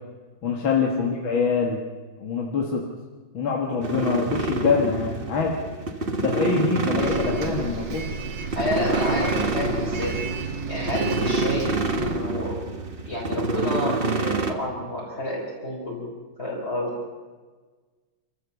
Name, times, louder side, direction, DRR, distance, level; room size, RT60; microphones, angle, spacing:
voice 1, 0.4-1.8 2.2-2.8 3.3-5.6 6.2-8.1, left 5 dB, 75° left, 0 dB, 2.6 m, -24 dB
sound 1, 3.8-14.5, right 2 dB, 30° right, 1.4 m, -27 dB
Bus, 7.0-12.2, right 5 dB, 65° right, 2.2 m, -33 dB
voice 2, 8.5-10.2 10.7-12.5 13.0-16.9, left 1 dB, 30° left, -4 dB, 4.8 m, -30 dB
28.5 x 15.0 x 7.1 m, 1.4 s
omnidirectional pair, 2.2 m